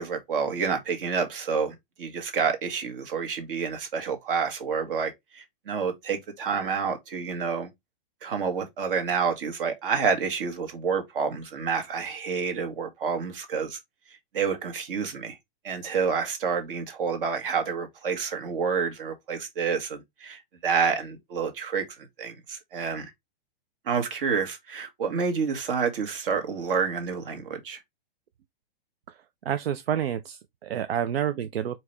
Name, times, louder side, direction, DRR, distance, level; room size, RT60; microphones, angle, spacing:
voice 1, 0.0-7.7 8.2-13.8 14.3-15.4 15.6-23.1 23.8-27.8, right 6 dB, 65° right, 1.6 m, -29 dB
voice 2, 29.4-31.8, right 9 dB, 85° right, 0.5 m, -29 dB
4.6 x 3.0 x 3.3 m
hypercardioid pair, 135°, 29 cm